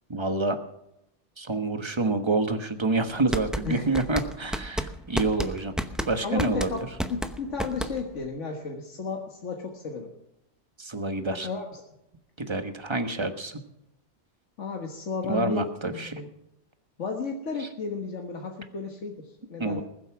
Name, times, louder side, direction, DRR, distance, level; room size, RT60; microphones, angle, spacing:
voice 1, 0.1-0.6 1.4-5.7 6.1-6.7 10.8-11.5 12.4-13.6 15.2-16.2 17.6-17.7 19.6-19.8, right 3 dB, 25° right, 8 dB, 1.2 m, -27 dB
sound 1, 3.1-8.3, equal, ahead, 0.6 m, -31 dB
voice 2, 6.2-10.1 11.4-11.8 14.6-16.3 17.0-19.8, left 4 dB, 90° left, 2 dB, 1.8 m, -33 dB
20.0 x 8.0 x 6.0 m, 0.83 s
omnidirectional pair, 1.2 m